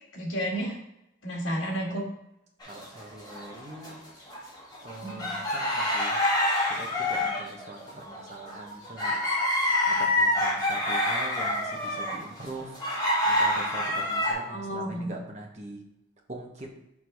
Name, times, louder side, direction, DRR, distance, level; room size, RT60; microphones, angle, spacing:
voice 1, 0.1-0.8 1.2-2.0 5.0-5.3 14.5-15.1, right 1 dB, 75° left, -2 dB, 2.0 m, -31 dB
sound 1, 2.6-3.9 4.3-14.3, left 1 dB, 20° left, 2.5 m, -27 dB
voice 2, 2.6-4.0 4.8-6.2 6.7-9.2 9.9-15.8 16.3-16.7, right 2 dB, 35° right, 0 dB, 1.1 m, -42 dB
6.2 x 3.8 x 4.9 m, 0.87 s
head